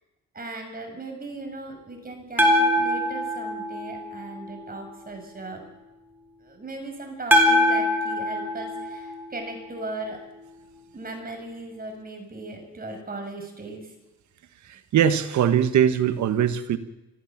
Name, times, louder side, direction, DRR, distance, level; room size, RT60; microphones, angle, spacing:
voice 1, 0.3-5.6 6.4-10.2 10.9-13.9, right 2 dB, 30° right, 4 dB, 6.6 m, -38 dB
sound 1, 2.4-4.6 7.3-9.7, equal, 5° right, 4.2 m, -23 dB
voice 2, 14.9-16.8, right 9 dB, 70° right, 11 dB, 1.5 m, -21 dB
25.5 x 15.5 x 7.4 m, 1.0 s
cardioid pair, 90°, 30 cm